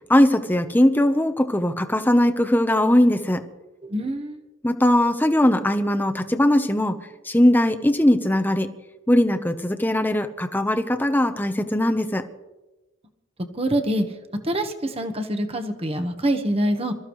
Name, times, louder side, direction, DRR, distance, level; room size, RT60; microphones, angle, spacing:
voice 1, 0.1-3.4 4.6-8.7 9.1-12.2, left 1 dB, 10° left, 7 dB, 0.9 m, -20 dB
voice 2, 3.8-4.4 13.5-14.0 14.4-16.9, right 1 dB, 30° right, 7 dB, 1.3 m, -25 dB
27.5 x 14.0 x 3.2 m, 1.1 s
head